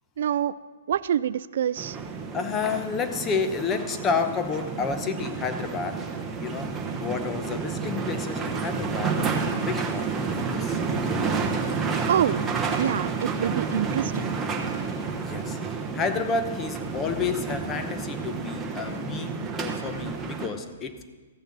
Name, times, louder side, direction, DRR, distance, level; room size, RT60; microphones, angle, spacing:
voice 1, 0.2-0.6 0.9-2.0 12.1-12.4 12.8-14.2, right 9 dB, 60° right, 17 dB, 0.3 m, -26 dB
sound 1, 1.8-20.5, right 5 dB, 10° right, 1.1 m, -30 dB
voice 2, 2.3-6.0 6.4-6.7 7.0-9.2 9.6-11.3 15.1-21.0, left 5 dB, 20° left, 8 dB, 0.8 m, -30 dB
14.5 x 6.6 x 6.1 m, 1.4 s
hypercardioid pair, 150°, 0 cm